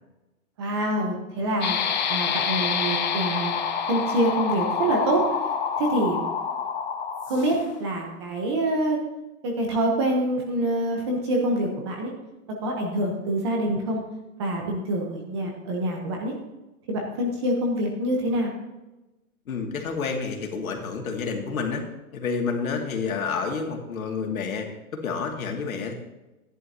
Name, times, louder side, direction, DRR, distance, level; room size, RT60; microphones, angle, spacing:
voice 1, 0.6-1.8 2.1-3.6 3.9-5.2 5.8-6.2 7.3-9.0 9.4-12.1 12.6-14.0 14.4-16.3 16.9-18.5, right 1 dB, 20° right, 1 dB, 0.9 m, -26 dB
sound 1, 1.6-7.7, left 7 dB, 30° left, 0.9 m, -27 dB
voice 2, 19.5-21.8 22.1-24.7 24.9-25.9, left 5 dB, 70° left, 2 dB, 2.4 m, -29 dB
13.0 x 11.0 x 2.8 m, 1.0 s
hypercardioid pair, 175°, 44 cm